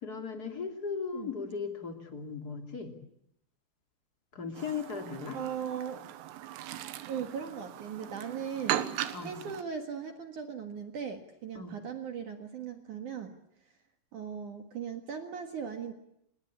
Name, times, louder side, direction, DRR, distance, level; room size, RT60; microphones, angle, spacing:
voice 1, 0.0-2.9 4.3-5.4 9.1-9.3 11.5-11.8, left 5 dB, 25° left, 5 dB, 2.2 m, -37 dB
Chirp tweet, 4.5-9.6, right 12 dB, 90° right, 3.9 m, -38 dB
voice 2, 5.3-6.0 7.1-13.3 14.1-15.9, right 7 dB, 60° right, 6 dB, 2.2 m, -38 dB
27.0 x 21.0 x 8.5 m, 0.76 s
omnidirectional pair, 5.8 m